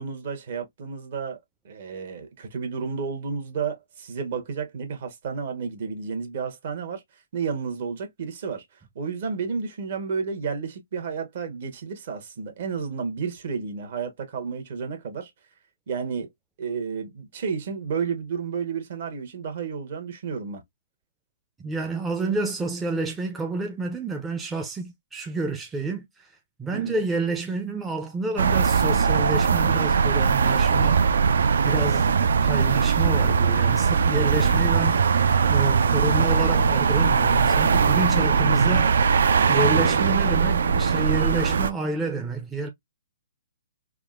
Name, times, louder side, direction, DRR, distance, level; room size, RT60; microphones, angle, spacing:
voice 1, 0.0-1.4 1.6-7.0 7.3-8.6 8.9-15.3 15.9-16.3 16.6-20.6 26.7-27.0, right 5 dB, 55° right, 1.0 m, -31 dB
voice 2, 21.6-26.3 26.6-31.1 31.6-35.0 35.5-39.0 39.5-42.7, right 3 dB, 10° right, 0.4 m, -29 dB
sound 1, 28.4-41.7, right 5 dB, 75° right, 0.3 m, -20 dB
3.5 x 2.1 x 2.3 m
hypercardioid pair, 150°, 0 cm